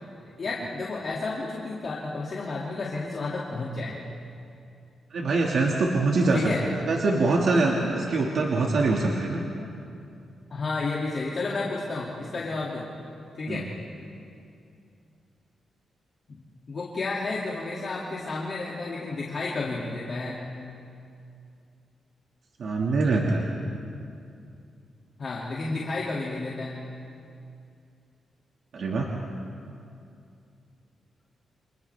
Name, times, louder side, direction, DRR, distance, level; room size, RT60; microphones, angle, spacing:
voice 1, 0.2-3.9 6.3-6.6 10.5-12.9 13.3-13.7 16.3-16.4 16.7-20.4 25.2-26.8, left 3 dB, 40° left, -5 dB, 2.2 m, -31 dB
voice 2, 5.1-6.5 6.9-9.4 13.5-13.7 22.6-23.5 28.7-29.1, right 3 dB, 55° right, -1 dB, 1.8 m, -24 dB
29.5 x 27.5 x 3.4 m, 2.5 s
wide cardioid pair, 180°, 0 cm